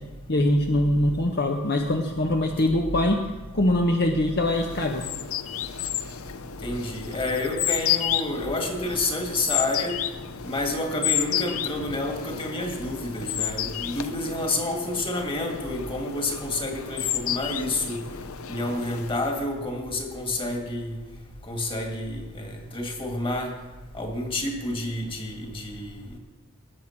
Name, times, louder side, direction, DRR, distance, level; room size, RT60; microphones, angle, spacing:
voice 1, 0.3-3.2 3.5-5.1, left 1 dB, 50° left, 3 dB, 1.0 m, -23 dB
sound 1, 4.5-19.4, left 11 dB, 75° left, 0.7 m, -31 dB
voice 2, 6.6-9.9 10.4-18.0 18.5-21.0 21.5-22.5 22.7-23.5 23.9-26.0, left 2 dB, 25° left, 2 dB, 2.3 m, -29 dB
19.5 x 7.9 x 6.0 m, 1.2 s
head